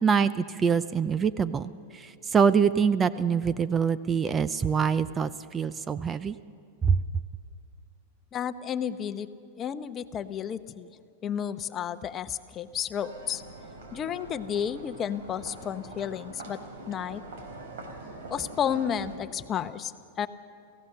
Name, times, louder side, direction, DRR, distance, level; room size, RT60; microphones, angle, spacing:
voice 1, 0.0-6.4 6.8-7.0, right 6 dB, 20° right, 15 dB, 0.6 m, -25 dB
voice 2, 8.3-9.3 9.6-10.9 11.2-13.4 13.9-16.6 16.9-17.2 18.3-20.3, left 8 dB, 30° left, 12 dB, 0.9 m, -32 dB
sound 1, 13.0-19.2, right 2 dB, 70° right, 4.0 m, -44 dB
29.5 x 16.0 x 6.7 m, 2.5 s
hypercardioid pair, 115°, 0 cm